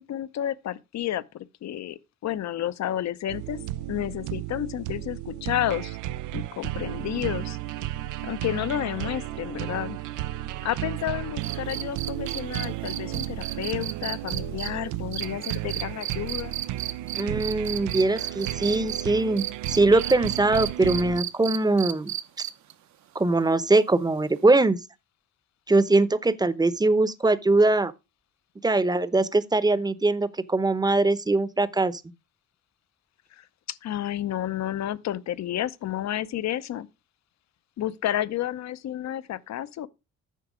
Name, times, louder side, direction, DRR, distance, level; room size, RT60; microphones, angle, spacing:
voice 1, 0.0-3.6 3.9-6.0 6.3-7.6 8.2-10.0 10.6-16.5 33.3-36.9 37.8-39.9, left 12 dB, 60° left, 0.7 m, -31 dB
sound 1, 3.3-21.2, right 15 dB, 90° right, 0.5 m, -33 dB
sound 2, 11.4-19.0 19.4-22.7 24.4-24.5, right 12 dB, 65° right, 0.9 m, -33 dB
voice 2, 17.1-22.1 23.1-24.8 25.7-27.9 28.6-32.0, right 2 dB, 15° right, 0.8 m, -22 dB
9.3 x 5.9 x 4.9 m
cardioid pair, 90°, 30 cm